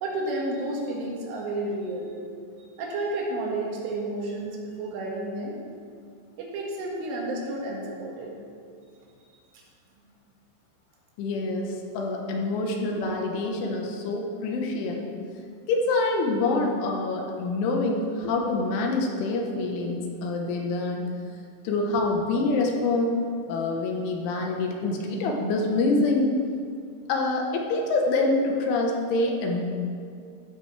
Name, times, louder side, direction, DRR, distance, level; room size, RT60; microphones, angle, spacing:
voice 1, 0.0-2.1 2.8-5.6 6.4-8.3 9.5-9.6, right 2 dB, 80° right, -3 dB, 4.4 m, -31 dB
voice 2, 11.2-15.1 15.7-21.1 21.7-23.2 23.5-26.4 27.1-29.6, left 2 dB, 80° left, 1 dB, 3.7 m, -26 dB
15.0 x 12.5 x 3.4 m, 2.3 s
omnidirectional pair, 5.6 m